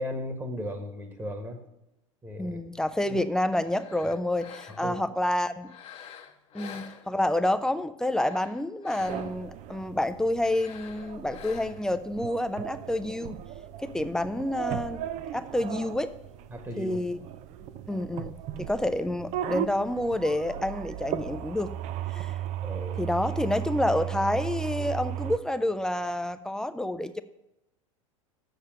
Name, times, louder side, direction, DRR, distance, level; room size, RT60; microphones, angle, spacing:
voice 1, 0.0-1.6 2.2-2.6 3.1-3.2 4.8-5.0 16.5-17.0 22.6-23.0, left 1 dB, 15° right, 6 dB, 1.5 m, -36 dB
voice 2, 2.4-5.7 6.5-13.4 13.8-15.0 15.3-16.1 16.8-17.2 17.9-21.7 22.1-22.4 23.0-27.2, left 1 dB, 5° left, 11 dB, 0.6 m, -28 dB
sound 1, 3.5-5.1 5.6-7.5 8.0-9.5 10.4-12.0, left 8 dB, 35° left, 1.2 m, -48 dB
sound 2, 9.0-25.4, right 11 dB, 45° right, 0.6 m, -36 dB
7.7 x 6.5 x 7.4 m, 0.91 s
figure-of-eight pair, 85°, 17 cm